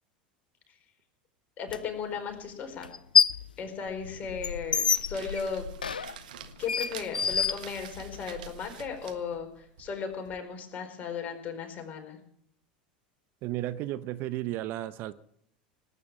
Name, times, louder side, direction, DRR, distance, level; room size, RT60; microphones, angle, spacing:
voice 1, 1.6-2.9 3.6-5.7 6.6-12.2, left 6 dB, 35° left, 4 dB, 4.6 m, -36 dB
sound 1, 1.7-1.8 2.8-3.5 3.9-8.2, left 6 dB, 85° left, 0.5 m, -27 dB
sound 2, 4.7-10.4, right 10 dB, 70° right, 1.5 m, -47 dB
voice 2, 13.4-15.1, right 14 dB, 50° right, 15 dB, 0.9 m, -33 dB
19.0 x 9.6 x 7.4 m, 0.70 s
hypercardioid pair, 80°, 5 cm